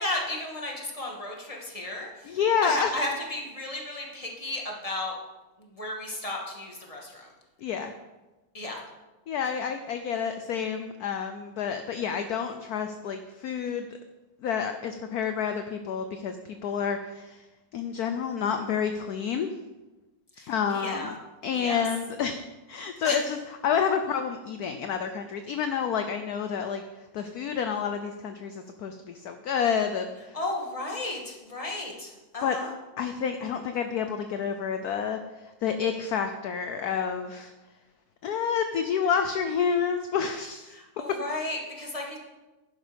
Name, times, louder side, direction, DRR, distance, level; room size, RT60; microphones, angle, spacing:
voice 1, 0.0-5.2 5.6-7.3 8.5-8.8 20.3-21.1 21.5-21.8 23.0-23.2 30.3-32.7 40.7-42.2, left 2 dB, 15° left, -1 dB, 2.1 m, -34 dB
voice 2, 2.3-2.9 7.6-7.9 9.3-13.9 14.4-17.4 17.7-19.5 20.5-21.1 21.4-22.4 22.7-23.4 23.6-26.8 27.1-30.4 32.4-32.6 33.0-35.2 35.6-37.5 38.2-41.2, left 7 dB, 60° left, 7 dB, 1.1 m, -29 dB
11.0 x 11.0 x 5.2 m, 1.1 s
omnidirectional pair, 2.1 m